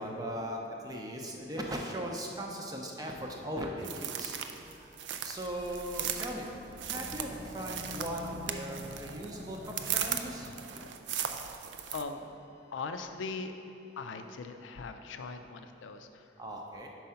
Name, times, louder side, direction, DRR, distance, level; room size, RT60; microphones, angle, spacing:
voice 1, 0.0-4.9 5.2-6.5 6.8-10.9 16.4-16.9, equal, 20° right, 0 dB, 0.5 m, -39 dB
sound 1, 3.8-12.0, right 9 dB, 75° right, 0.4 m, -38 dB
sound 2, 5.3-10.9, equal, 55° right, 1.1 m, -47 dB
voice 2, 11.2-11.6 11.9-12.2 12.7-13.5 14.0-16.2, left 4 dB, 90° left, 7 dB, 0.4 m, -40 dB
5.2 x 4.7 x 5.6 m, 2.8 s
head